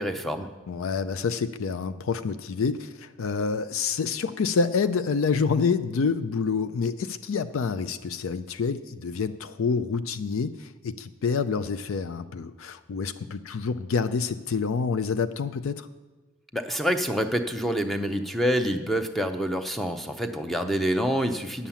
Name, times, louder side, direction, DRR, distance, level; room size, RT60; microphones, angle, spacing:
voice 1, 0.0-0.5 16.5-21.7, equal, ahead, 7 dB, 0.6 m, -27 dB
voice 2, 0.7-15.9, left 5 dB, 70° left, 11 dB, 0.4 m, -27 dB
9.9 x 7.4 x 7.1 m, 1.3 s
head